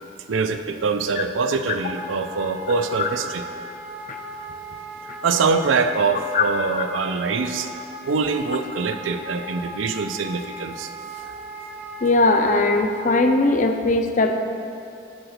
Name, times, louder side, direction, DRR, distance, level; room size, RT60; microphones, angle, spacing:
voice 1, 0.3-3.4 5.2-7.7 8.1-10.9 11.2-11.4, right 4 dB, 85° right, 8 dB, 0.5 m, -24 dB
Wind instrument woodwind instrument, 1.9-13.2, right 1 dB, 10° right, 0.5 m, -37 dB
voice 2, 12.0-14.4, left 2 dB, 40° left, 6 dB, 0.5 m, -19 dB
10.5 x 3.9 x 6.5 m, 2.6 s
head